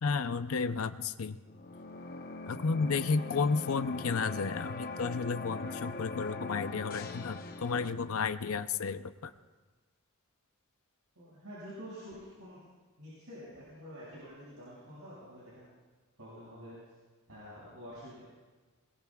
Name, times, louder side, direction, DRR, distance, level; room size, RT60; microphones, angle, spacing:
voice 1, 0.0-1.4 2.5-9.3, left 5 dB, 70° left, 11 dB, 0.6 m, -32 dB
sound 1, 1.5-7.9, left 3 dB, 45° left, 0.9 m, -41 dB
voice 2, 11.1-12.7 13.0-15.7 16.2-16.7 17.3-18.1, equal, 80° right, -8 dB, 6.4 m, -48 dB
22.5 x 21.5 x 2.4 m, 1.4 s
head